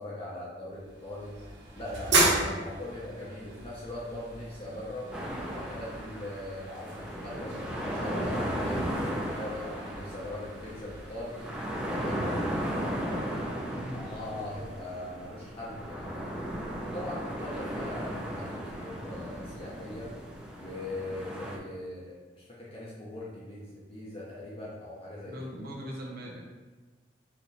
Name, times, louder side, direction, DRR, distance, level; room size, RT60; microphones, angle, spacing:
voice 1, 0.0-1.3 1.7-13.5 13.9-16.4 16.8-20.1 20.5-25.3, left 1 dB, 30° left, -6 dB, 0.8 m, -40 dB
sound 1, 0.7-11.5, right 2 dB, 80° right, 1.2 m, -34 dB
sound 2, 5.1-21.6, equal, 5° right, 0.5 m, -36 dB
voice 2, 13.7-14.1 25.2-26.4, equal, 55° right, -1 dB, 0.7 m, -40 dB
4.3 x 3.1 x 4.1 m, 1.3 s
head